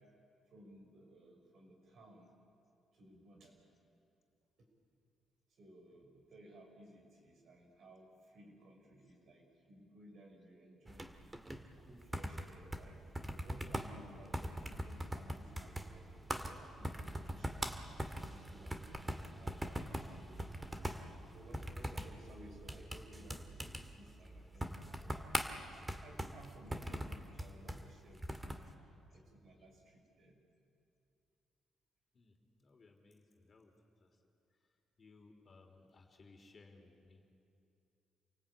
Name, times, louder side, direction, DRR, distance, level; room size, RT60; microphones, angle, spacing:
voice 1, 0.5-2.3 2.9-3.6 5.6-11.1 11.8-17.7 18.2-25.3 25.7-30.4, right 1 dB, 60° right, 1 dB, 6.1 m, -58 dB
sound 1, 10.9-28.7, right 1 dB, 15° right, 1.9 m, -43 dB
voice 2, 32.1-33.7 34.0-34.1 35.0-37.2, left 3 dB, 40° left, 3 dB, 3.5 m, -62 dB
28.5 x 18.0 x 8.9 m, 2.5 s
cardioid pair, 90°, 0 cm